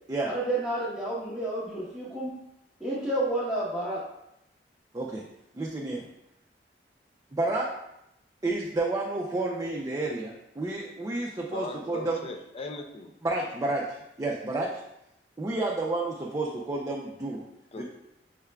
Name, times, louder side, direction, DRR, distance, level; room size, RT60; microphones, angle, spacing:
voice 1, 0.2-2.3 2.8-4.0, right 1 dB, ahead, -12 dB, 1.0 m, -30 dB
voice 2, 5.5-6.0 7.3-7.7 8.4-12.3 13.2-14.7 15.4-17.4 17.8-17.9, right 2 dB, 20° right, -3 dB, 0.4 m, -30 dB
voice 3, 11.4-13.1 17.7-17.8, left 3 dB, 35° left, 4 dB, 0.5 m, -38 dB
6.5 x 3.5 x 2.3 m, 0.84 s
head